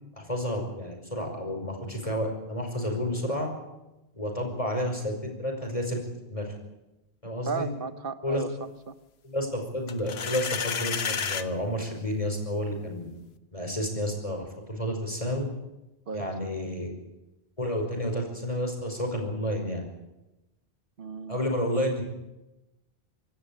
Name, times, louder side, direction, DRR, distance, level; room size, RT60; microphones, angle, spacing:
voice 1, 0.2-3.5 4.1-6.0 6.3-6.5 7.2-7.7 8.2-8.4 9.2-13.1 13.5-15.5 16.1-16.9 17.6-19.8 21.3-22.0, equal, 35° left, 2 dB, 5.3 m, -30 dB
voice 2, 7.5-8.9 16.1-16.3 21.0-21.4, right 5 dB, 60° right, 12 dB, 1.1 m, -35 dB
sound 1, 9.9-11.5, left 7 dB, 75° left, 1.2 m, -31 dB
26.0 x 13.0 x 8.8 m, 0.98 s
omnidirectional pair, 1.1 m